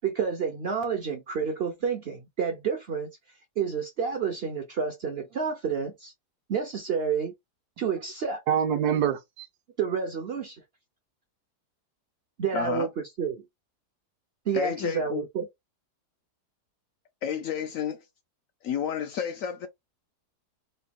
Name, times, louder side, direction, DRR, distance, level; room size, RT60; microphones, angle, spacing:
voice 1, 0.0-3.1 3.6-6.1 6.5-7.3 7.8-8.4 9.8-10.6 12.4-12.9 13.2-13.4 14.5-15.5, right 6 dB, 60° right, 0.6 m, -29 dB
voice 2, 8.5-9.5, right 8 dB, 75° right, 1.2 m, -25 dB
voice 3, 12.5-12.9 14.5-15.2 17.2-18.0 18.6-19.7, left 8 dB, 70° left, 0.8 m, -31 dB
3.9 x 2.2 x 3.5 m
omnidirectional pair, 1.7 m